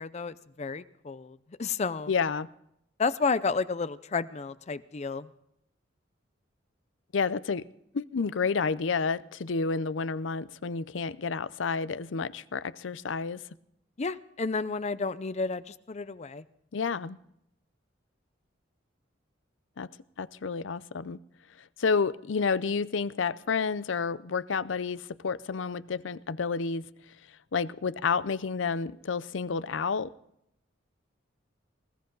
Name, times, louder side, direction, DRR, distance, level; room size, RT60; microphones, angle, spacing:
voice 1, 0.0-2.1 3.0-5.3 14.0-16.4, left 4 dB, 35° left, 15 dB, 0.5 m, -31 dB
voice 2, 2.1-2.5 7.1-7.6 7.9-13.4 16.7-17.2 19.8-19.9 20.2-21.2 21.8-26.8 27.5-30.1, left 5 dB, 80° left, 18 dB, 0.6 m, -30 dB
20.0 x 16.0 x 3.9 m, 0.78 s
head